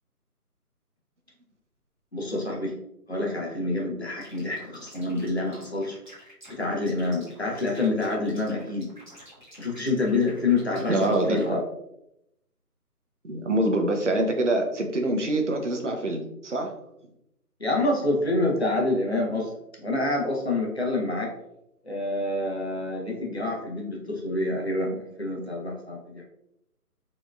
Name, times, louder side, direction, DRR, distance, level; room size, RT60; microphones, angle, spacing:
voice 1, 2.1-2.8 3.1-6.0 6.5-8.9 9.6-11.6 17.6-19.5 19.8-21.3 21.8-26.2, left 2 dB, 45° left, -1 dB, 0.7 m, -27 dB
sound 1, 4.2-11.5, equal, 30° right, 1.1 m, -50 dB
voice 2, 10.9-11.6 13.2-16.7, right 1 dB, 50° right, 3 dB, 0.6 m, -25 dB
4.1 x 3.0 x 2.3 m, 0.83 s
figure-of-eight pair, 180°, 47 cm